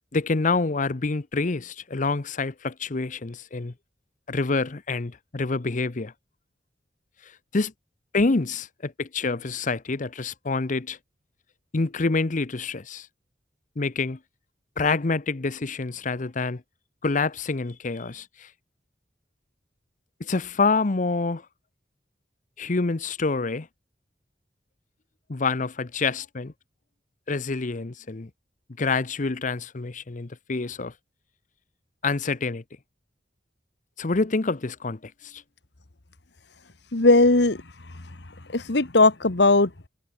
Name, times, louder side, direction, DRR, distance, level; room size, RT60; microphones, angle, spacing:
voice 1, 0.1-3.7 4.3-6.1 7.2-7.7 8.1-11.0 11.7-13.1 13.8-14.2 14.8-16.6 17.0-18.5 20.2-21.5 22.6-23.7 25.3-26.5 27.3-28.3 28.8-30.9 32.0-32.6 34.0-35.4, left 3 dB, 45° left, 0.8 m, -27 dB
voice 2, 36.9-37.6 38.5-39.9, left 2 dB, 65° left, 1.6 m, -18 dB
head